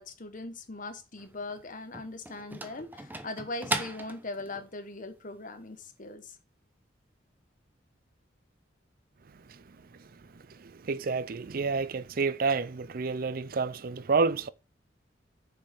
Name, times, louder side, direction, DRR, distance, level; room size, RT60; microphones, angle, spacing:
voice 1, 0.0-6.3, left 2 dB, 45° left, 1.4 m, -40 dB
sound 1, 1.2-4.7, right 2 dB, 10° right, 0.8 m, -37 dB
voice 2, 10.6-14.5, right 4 dB, 50° right, 0.5 m, -29 dB
6.9 x 5.9 x 5.8 m
head